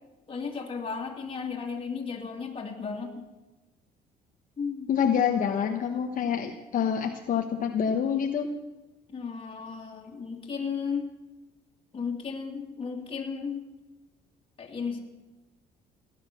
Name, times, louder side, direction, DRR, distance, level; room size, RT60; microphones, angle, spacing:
voice 1, 0.3-3.3 4.6-4.9 9.1-11.1 11.9-13.6 14.6-15.0, left 5 dB, 30° left, 0 dB, 2.7 m, -34 dB
voice 2, 4.9-8.5, left 8 dB, 50° left, 4 dB, 1.2 m, -26 dB
17.5 x 10.5 x 6.8 m, 1.1 s
cardioid pair, 110°, 17 cm